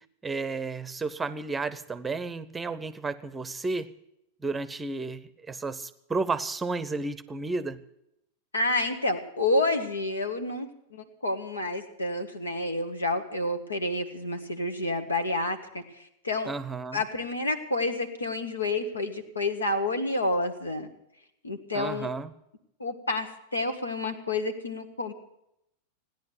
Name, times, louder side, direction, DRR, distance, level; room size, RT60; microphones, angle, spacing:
voice 1, 0.2-3.9 4.4-7.8 16.5-17.0 21.7-22.3, right 3 dB, 15° right, 15 dB, 0.8 m, -32 dB
voice 2, 8.5-16.5 16.9-20.9 21.4-22.1 22.8-25.1, left 2 dB, 75° left, 7 dB, 1.6 m, -29 dB
16.5 x 10.5 x 7.7 m, 0.80 s
figure-of-eight pair, 90°, 0 cm